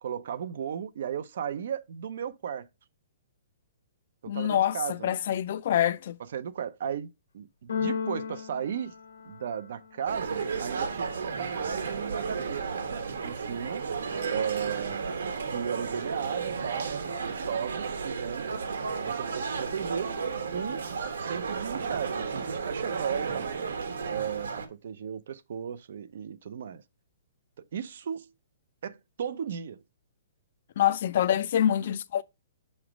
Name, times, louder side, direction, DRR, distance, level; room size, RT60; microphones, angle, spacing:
voice 1, 0.0-2.7 4.2-5.2 6.3-7.1 7.3-9.0 9.2-12.8 13.2-13.8 14.3-18.7 19.0-20.1 20.5-20.9 21.2-23.5 24.1-26.8 27.7-28.3 28.8-29.8, right 8 dB, 50° right, 0.5 m, -35 dB
voice 2, 4.3-6.2 30.8-32.2, left 10 dB, 40° left, 0.3 m, -26 dB
Keyboard (musical), 7.7-9.8, left 6 dB, 75° left, 0.9 m, -34 dB
sound 1, 10.1-24.7, right 5 dB, 75° right, 1.0 m, -33 dB
6.0 x 3.1 x 4.9 m
hypercardioid pair, 175°, 0 cm